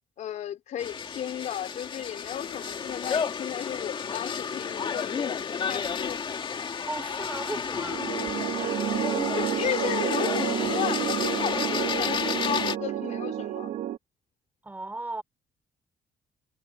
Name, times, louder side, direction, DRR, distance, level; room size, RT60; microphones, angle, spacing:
voice 1, 0.2-6.2 9.3-13.7, left 10 dB, 65° left, 4.2 m, -34 dB
sound 1, 0.8-12.8, left 6 dB, 40° left, 2.1 m, -31 dB
voice 2, 6.9-8.0 14.6-15.2, right 2 dB, 15° right, 3.2 m, -36 dB
sound 2, 7.9-14.0, right 11 dB, 70° right, 1.2 m, -30 dB
cardioid pair, 120°, 13 cm